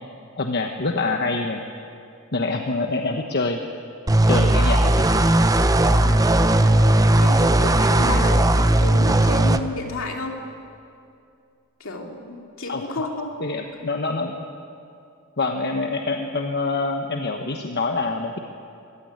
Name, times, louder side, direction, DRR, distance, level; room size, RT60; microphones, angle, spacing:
voice 1, 0.4-1.7 2.3-3.6 4.3-5.1 12.7-12.9 13.4-14.3 15.4-18.4, left 3 dB, 50° left, 4 dB, 1.2 m, -25 dB
sound 1, 4.1-9.6, right 1 dB, 15° right, 0.8 m, -17 dB
voice 2, 4.4-4.8 5.8-10.4 11.8-13.3, left 2 dB, 70° left, 2 dB, 2.7 m, -32 dB
24.0 x 15.5 x 9.6 m, 2.5 s
head